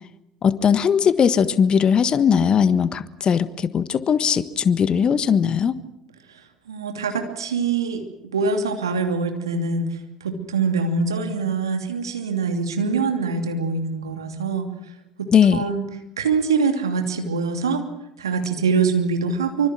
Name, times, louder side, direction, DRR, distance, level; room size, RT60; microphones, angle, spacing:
voice 1, 0.4-5.8 15.3-15.6, left 7 dB, 40° left, 14 dB, 1.4 m, -19 dB
voice 2, 6.7-8.0 8.3-14.7 15.2-15.8 16.2-17.8 18.2-19.7, right 4 dB, 80° right, 5 dB, 2.8 m, -24 dB
25.5 x 25.0 x 6.2 m, 0.87 s
figure-of-eight pair, 60°, 2 cm